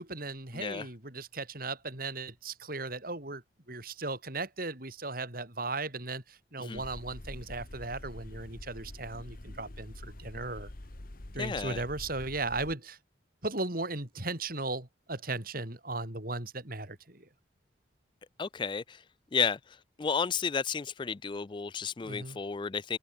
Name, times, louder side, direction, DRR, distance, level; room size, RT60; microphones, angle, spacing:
voice 1, 0.0-3.4 3.7-10.7 11.3-13.0 13.4-17.3 22.0-22.4, right 3 dB, 50° right, 4.1 m, -37 dB
voice 2, 0.5-0.9 6.6-6.8 11.4-11.8 18.4-19.0 19.3-19.6 20.0-23.0, left 6 dB, 25° left, 0.4 m, -32 dB
sound 1, 6.7-12.7, left 1 dB, 50° left, 1.4 m, -46 dB
head